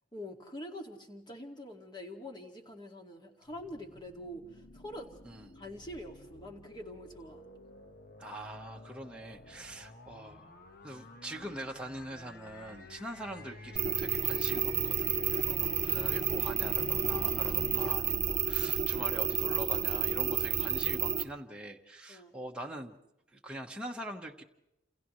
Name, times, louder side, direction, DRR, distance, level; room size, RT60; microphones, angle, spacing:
voice 1, 0.1-5.1 5.5-7.5 15.5-15.9 22.1-22.3, left 1 dB, 25° left, 3 dB, 2.2 m, -45 dB
sound 1, 3.5-19.7, left 1 dB, 50° left, 1.4 m, -48 dB
voice 2, 8.2-10.5 10.8-23.0 23.3-24.4, right 1 dB, 5° right, 0 dB, 1.2 m, -43 dB
sound 2, 13.8-21.2, right 8 dB, 40° right, 1.1 m, -31 dB
28.5 x 28.5 x 3.2 m, 0.90 s
head